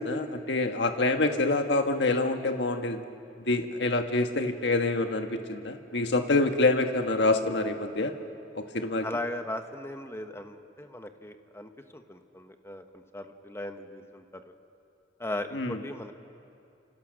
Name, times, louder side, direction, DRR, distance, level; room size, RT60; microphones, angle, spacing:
voice 1, 0.0-3.1 3.5-8.1 8.5-9.1 15.5-15.8, left 2 dB, 80° left, 5 dB, 1.5 m, -26 dB
voice 2, 9.0-14.5 15.2-16.1, left 1 dB, 15° left, 6 dB, 1.3 m, -38 dB
29.0 x 27.5 x 6.5 m, 2.6 s
head